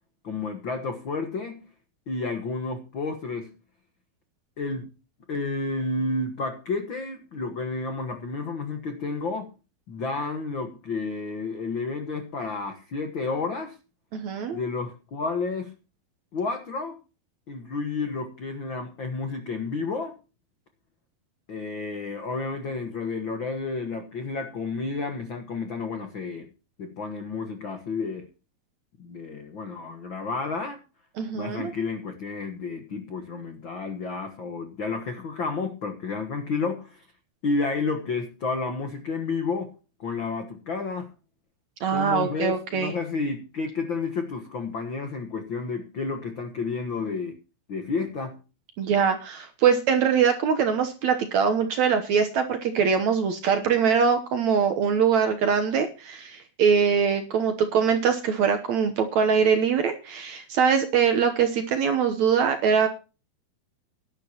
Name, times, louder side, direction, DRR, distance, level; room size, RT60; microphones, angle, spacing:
voice 1, 0.2-1.6 2.1-3.5 4.6-4.9 5.3-9.5 9.9-13.8 14.5-15.7 16.3-17.0 17.5-20.2 21.5-26.5 26.8-28.3 29.0-30.8 31.3-37.0 37.4-39.7 40.0-41.1 41.9-47.4 47.7-48.4, left 4 dB, 80° left, 1.0 m, -31 dB
voice 2, 14.1-14.6 31.2-31.7 41.8-42.9 48.8-62.9, right 6 dB, 65° right, 1.8 m, -23 dB
17.5 x 11.5 x 2.9 m
omnidirectional pair, 4.4 m